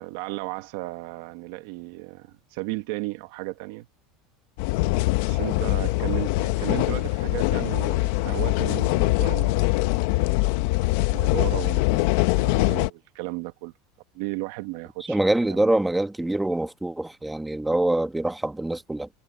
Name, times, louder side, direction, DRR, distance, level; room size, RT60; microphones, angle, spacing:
voice 1, 0.0-3.9 5.2-9.7 11.1-13.7 14.1-15.7, right 21 dB, 65° right, 1.2 m, -34 dB
sound 1, 4.6-12.9, left 19 dB, 65° left, 0.9 m, -23 dB
voice 2, 15.1-19.1, right 1 dB, 5° right, 1.4 m, -24 dB
supercardioid pair, 150°, 0 cm